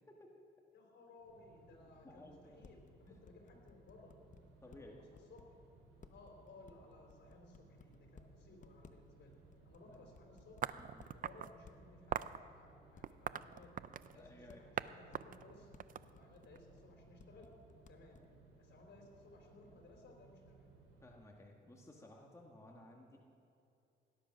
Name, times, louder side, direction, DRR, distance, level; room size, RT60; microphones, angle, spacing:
voice 1, 0.7-2.8 3.1-4.1 4.7-5.5 6.1-9.4 9.6-10.7 11.1-13.7 14.1-15.7 16.1-17.5 17.9-18.2 18.6-20.7 21.6-21.7, left 3 dB, 60° left, 1 dB, 4.1 m, -60 dB
sound 1, 1.2-21.1, right 3 dB, 85° right, 3.6 m, -64 dB
voice 2, 2.0-2.6 3.1-3.2 4.6-5.0 9.9-10.0 10.7-11.1 14.1-14.7 21.0-23.2, left 1 dB, 15° left, 0 dB, 1.5 m, -57 dB
sound 2, 2.6-4.8 5.1-5.4 6.0-8.2 8.6-9.1 9.3-11.1 11.6-11.8 12.2-12.4 13.0-13.1 13.6-15.4 15.7-15.8 16.1-16.8 17.2-18.3, left 6 dB, 40° left, 0.9 m, -60 dB
sound 3, 10.6-11.5 12.1-12.4 13.0-14.2 14.8-14.9 15.1-16.6, right 9 dB, 45° right, 0.5 m, -41 dB
18.0 x 10.5 x 6.1 m, 2.8 s
cardioid pair, 90°, 20 cm